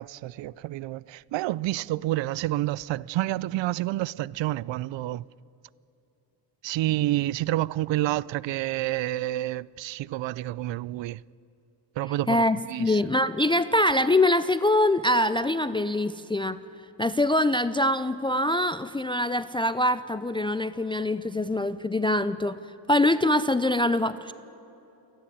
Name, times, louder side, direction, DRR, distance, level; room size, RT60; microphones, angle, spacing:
voice 1, 0.0-5.2 6.6-11.2 12.0-13.0, right 15 dB, 75° right, 0.5 m, -29 dB
voice 2, 12.3-16.6 17.0-22.6 22.9-24.3, left 1 dB, 10° left, 0.4 m, -24 dB
28.5 x 10.5 x 9.8 m
cardioid pair, 110°, 45 cm